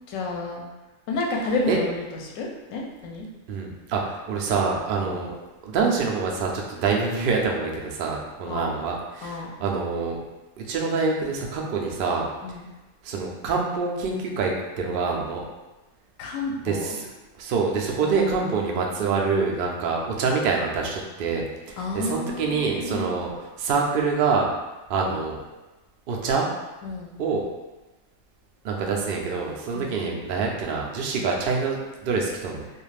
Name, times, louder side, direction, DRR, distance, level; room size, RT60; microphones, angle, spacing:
voice 1, 0.1-0.6 1.1-1.9 2.2-3.3 5.1-5.2 8.5-8.8 9.2-9.5 12.4-12.6 16.2-17.0 18.0-18.4 21.8-23.3 26.8-27.1 29.7-30.0, left 2 dB, 70° left, 0 dB, 0.9 m, -31 dB
voice 2, 3.5-5.3 5.6-10.2 10.6-12.3 13.0-15.4 16.6-17.1 17.4-21.4 21.7-23.3 23.6-24.5 24.9-25.4 26.1-26.5 27.2-27.5 28.6-32.7, right 4 dB, 85° right, 0 dB, 0.4 m, -26 dB
2.4 x 2.4 x 3.2 m, 1.1 s
omnidirectional pair, 1.5 m